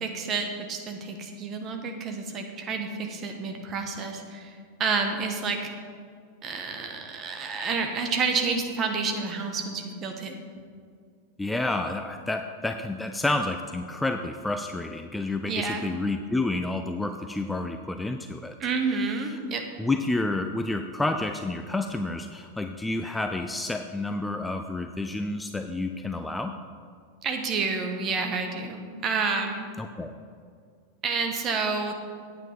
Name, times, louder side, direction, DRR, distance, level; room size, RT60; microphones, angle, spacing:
voice 1, 0.0-5.6 6.4-10.3 15.5-15.9 18.6-19.6 27.2-29.7 31.0-31.9, right 4 dB, 30° right, 4 dB, 1.3 m, -29 dB
voice 2, 11.4-18.6 19.0-19.4 19.8-26.6 29.8-30.1, left 2 dB, 5° left, 6 dB, 0.4 m, -30 dB
8.9 x 8.7 x 5.1 m, 2.1 s
figure-of-eight pair, 90°, 0 cm